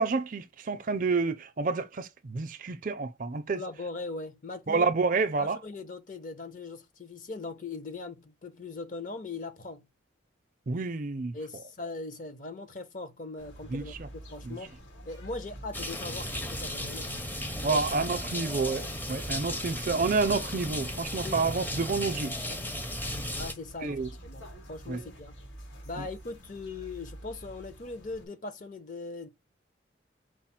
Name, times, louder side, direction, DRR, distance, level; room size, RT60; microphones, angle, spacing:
voice 1, 0.0-3.6 4.7-5.6 10.7-11.3 13.7-14.1 14.4-14.5 17.6-22.3 23.1-23.2 23.8-24.1 24.9-25.0 26.0-26.1, right 4 dB, 45° right, 0.5 m, -29 dB
voice 2, 3.5-4.9 5.4-9.9 11.3-14.7 15.1-17.3 17.7-17.8 21.2-21.4 23.3-25.3 25.8-29.3, left 3 dB, 45° left, 0.7 m, -40 dB
sound 1, 13.4-28.3, right 1 dB, 90° left, 1.5 m, -47 dB
sound 2, 15.7-23.5, left 1 dB, 10° left, 0.5 m, -35 dB
4.8 x 2.0 x 4.2 m
head